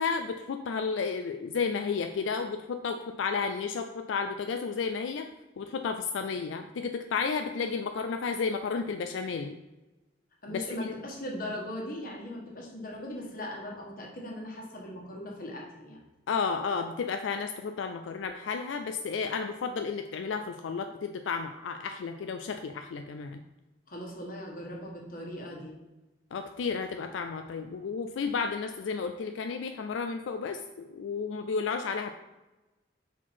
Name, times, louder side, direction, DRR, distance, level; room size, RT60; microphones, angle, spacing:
voice 1, 0.0-5.3 5.6-9.6 10.5-10.9 16.3-23.4 26.3-32.1, left 5 dB, 85° left, 6 dB, 0.4 m, -32 dB
voice 2, 10.4-16.0 23.9-25.7, left 1 dB, 45° left, -1 dB, 1.4 m, -39 dB
5.9 x 4.5 x 4.4 m, 1.1 s
head